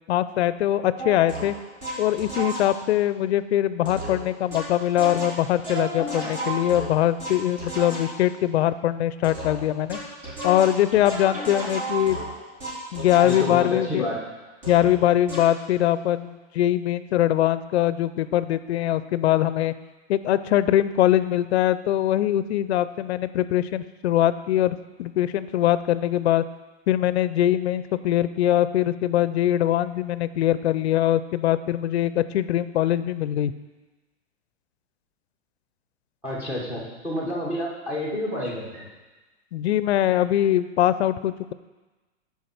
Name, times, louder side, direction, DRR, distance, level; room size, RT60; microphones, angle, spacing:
voice 1, 0.1-1.6 2.0-10.0 10.4-12.2 12.9-14.1 14.7-19.7 20.1-26.4 26.9-33.5 39.5-41.5, left 12 dB, 65° left, 14 dB, 0.5 m, -22 dB
sound 1, 1.0-3.0 3.9-8.3 9.2-13.8 14.6-15.0 15.3-15.6, right 2 dB, 35° right, 2.5 m, -33 dB
voice 2, 13.2-14.2 36.2-38.9, left 1 dB, 5° right, -4 dB, 1.1 m, -29 dB
8.4 x 4.7 x 5.9 m, 1.2 s
supercardioid pair, 175°, 35 cm